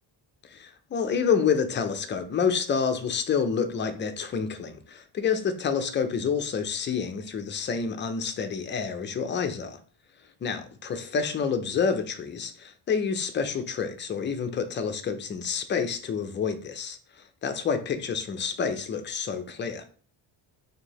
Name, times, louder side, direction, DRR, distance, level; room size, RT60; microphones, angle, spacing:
voice 1, 0.5-9.8 10.4-17.0 17.4-19.8, left 6 dB, 25° left, 0.4 m, -28 dB
4.3 x 2.7 x 2.9 m
cardioid pair, 155°, 44 cm